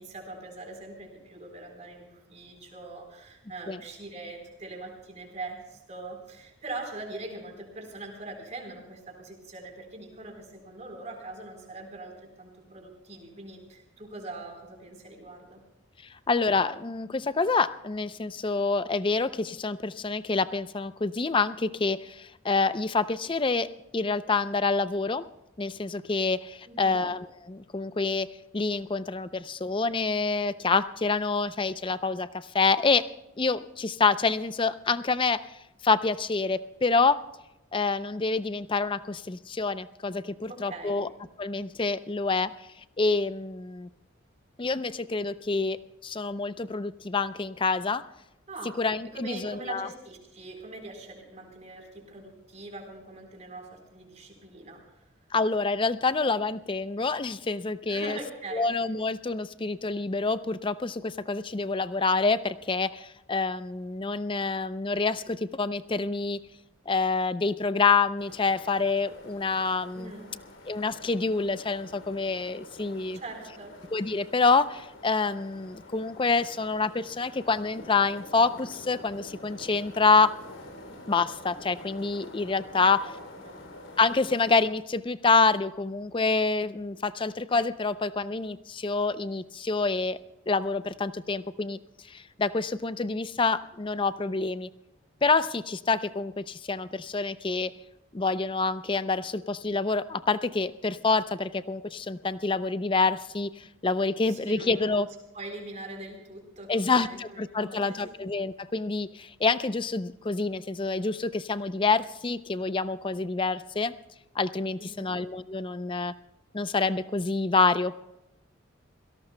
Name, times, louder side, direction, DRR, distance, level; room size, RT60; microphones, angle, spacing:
voice 1, 0.0-15.6 26.7-27.1 40.5-41.0 48.5-48.7 49.1-55.0 57.9-58.7 70.0-70.3 73.1-73.8 82.7-83.1 83.4-83.6 104.2-108.1 114.8-115.1, right 2 dB, 35° right, 2 dB, 4.0 m, -42 dB
voice 2, 16.3-23.7 23.9-25.2 25.6-28.3 28.5-33.0 33.4-35.5 35.8-37.2 37.7-41.1 41.4-42.5 43.0-43.9 44.6-45.8 46.0-48.0 48.8-49.9 55.3-58.2 58.5-66.4 66.9-70.1 70.7-73.2 73.9-80.3 81.1-83.0 84.0-90.2 90.5-91.8 92.1-94.7 95.2-97.7 98.1-105.1 106.7-113.9 114.4-116.1 116.5-118.0, left 4 dB, 25° left, 13 dB, 0.5 m, -27 dB
sound 1, 68.2-84.7, left 1 dB, 70° left, 3.2 m, -47 dB
27.0 x 17.5 x 2.2 m, 0.93 s
head